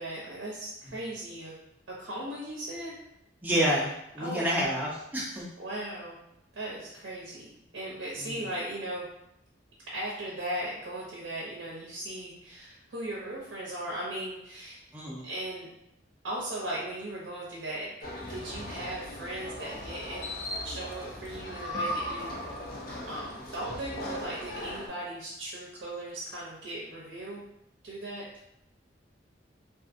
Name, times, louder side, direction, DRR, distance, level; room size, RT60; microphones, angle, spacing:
voice 1, 0.0-1.5 1.9-2.9 4.2-4.8 5.6-6.2 6.5-9.1 9.9-14.8 15.2-15.7 16.2-17.9 18.3-20.4 20.6-22.3 23.1-27.4 27.8-28.2, right 1 dB, 90° right, -5 dB, 0.6 m, -37 dB
voice 2, 3.4-5.5 8.2-8.4 14.9-15.2, equal, 10° right, -6 dB, 0.5 m, -29 dB
sound 1, 18.0-24.9, left 1 dB, 50° left, 0.5 m, -38 dB
2.6 x 2.4 x 2.5 m, 0.80 s
head